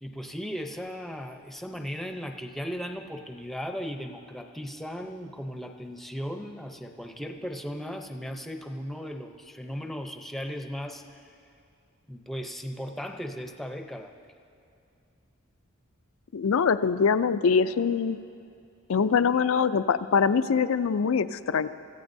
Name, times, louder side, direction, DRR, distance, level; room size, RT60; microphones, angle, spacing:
voice 1, 0.0-11.2 12.1-14.1, equal, ahead, 3 dB, 0.7 m, -37 dB
voice 2, 16.3-18.2 18.9-21.7, left 6 dB, 70° left, 13 dB, 0.4 m, -23 dB
26.0 x 15.0 x 2.7 m, 2.5 s
head